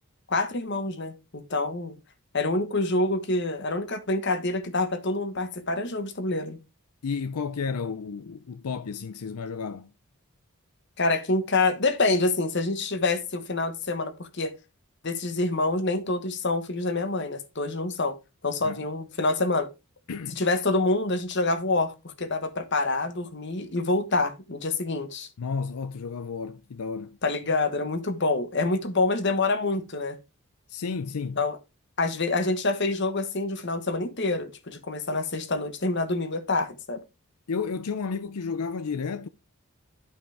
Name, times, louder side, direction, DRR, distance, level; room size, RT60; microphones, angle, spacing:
voice 1, 0.3-1.9 2.3-6.6 11.0-14.5 15.0-18.2 18.4-19.7 20.3-25.3 27.2-30.2 31.4-31.6 32.0-37.0, left 2 dB, 50° left, 1.2 m, -26 dB
voice 2, 7.0-9.9 18.6-18.8 20.1-20.4 25.4-27.2 30.7-31.4 37.5-39.3, left 5 dB, 80° left, 0.5 m, -32 dB
11.5 x 5.6 x 3.4 m
head